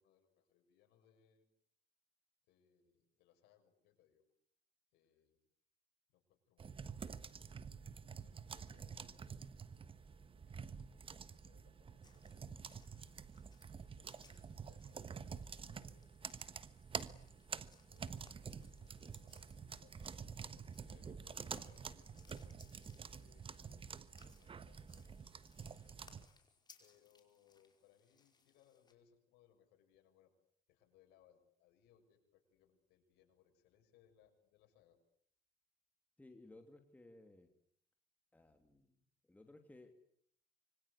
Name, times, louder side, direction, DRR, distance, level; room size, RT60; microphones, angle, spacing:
voice 1, 0.0-1.5 2.5-4.3 4.9-5.4 6.1-7.5 8.1-9.3 9.9-12.5 13.0-13.2 13.6-16.4 17.5-20.2 20.5-25.1 25.5-26.1 26.8-30.3 30.7-35.0, left 9 dB, 90° left, 4 dB, 6.7 m, -72 dB
sound 1, 6.6-26.3, right 6 dB, 30° right, 1.4 m, -49 dB
sound 2, 12.0-28.9, left 4 dB, 25° left, 5.1 m, -69 dB
voice 2, 36.2-37.5 38.3-38.9 39.3-39.9, left 2 dB, 10° left, 5 dB, 2.9 m, -59 dB
26.0 x 24.5 x 8.4 m, 0.67 s
cardioid pair, 110°, 17 cm